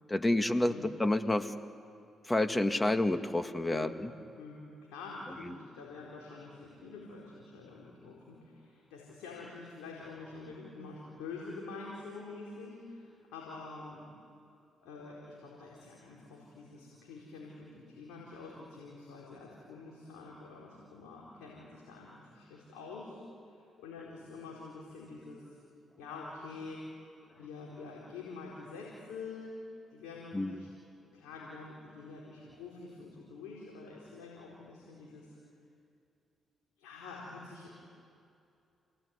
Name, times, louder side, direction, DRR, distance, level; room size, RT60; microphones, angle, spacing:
voice 1, 0.1-1.5 2.3-4.1 30.3-30.5, left 1 dB, 15° left, 9 dB, 1.7 m, -29 dB
voice 2, 3.6-4.0 4.3-4.6 4.9-14.1 14.8-23.2 23.5-25.5 26.0-26.8 27.4-29.6 29.9-30.7 31.0-35.3 36.8-37.7, left 3 dB, 90° left, -4 dB, 4.5 m, -47 dB
28.0 x 18.5 x 9.7 m, 2.5 s
supercardioid pair, 60°, 0 cm